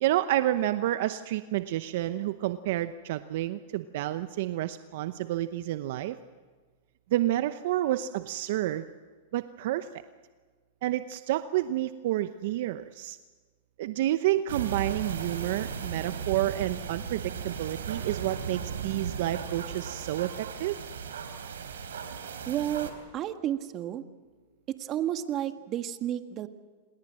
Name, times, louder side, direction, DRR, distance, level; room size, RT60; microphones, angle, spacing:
voice 1, 0.0-6.2 7.1-8.8 9.3-9.9 10.8-13.2 13.8-20.8, right 14 dB, 65° right, 11 dB, 0.8 m, -29 dB
sound 1, 14.5-22.9, right 7 dB, 85° right, 3.7 m, -36 dB
voice 2, 22.5-24.0 24.7-26.5, right 11 dB, 35° right, 8 dB, 1.7 m, -32 dB
28.0 x 20.5 x 7.7 m, 1.4 s
hypercardioid pair, 125°, 0 cm